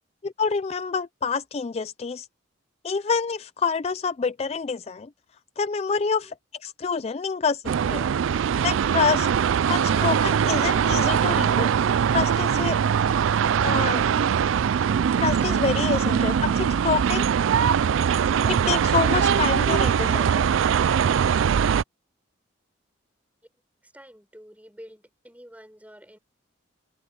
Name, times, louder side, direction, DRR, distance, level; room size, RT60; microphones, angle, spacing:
voice 1, 0.2-2.3 2.8-5.1 5.6-6.3 6.6-7.6 7.9-8.1 8.6-11.7 12.1-12.8 13.6-14.2 15.2-17.3 18.4-20.5, left 5 dB, 30° left, 0.3 m, -27 dB
sound 1, 7.6-21.8, right 7 dB, 70° right, 0.3 m, -22 dB
voice 2, 23.8-26.2, equal, 5° right, 5.1 m, -48 dB
head